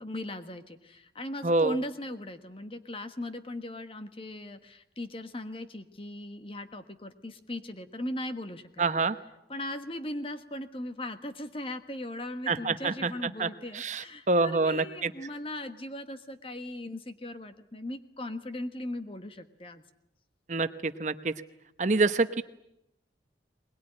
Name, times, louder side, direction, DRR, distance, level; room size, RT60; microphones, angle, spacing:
voice 1, 0.0-8.9 9.5-19.8, left 1 dB, 30° left, 9 dB, 1.4 m, -38 dB
voice 2, 1.4-1.7 8.8-9.2 12.5-13.1 13.4-13.5 13.7-15.1 20.5-21.3 21.8-22.4, right 3 dB, 40° right, 11 dB, 0.9 m, -26 dB
21.5 x 21.0 x 9.9 m, 0.83 s
head